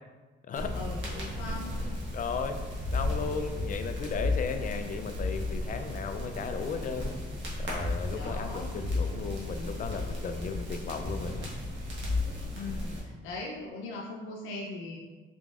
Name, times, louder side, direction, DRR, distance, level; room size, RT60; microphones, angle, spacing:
sound 1, 0.5-13.0, left 2 dB, 70° right, 1.4 m, -34 dB
voice 1, 0.7-1.8 8.1-8.8 12.5-15.0, left 2 dB, 90° left, -2 dB, 0.6 m, -40 dB
voice 2, 2.1-2.6 2.9-7.2 7.6-11.5, left 5 dB, 45° left, 7 dB, 0.4 m, -35 dB
4.4 x 3.7 x 2.4 m, 1.3 s
cardioid pair, 90°, 20 cm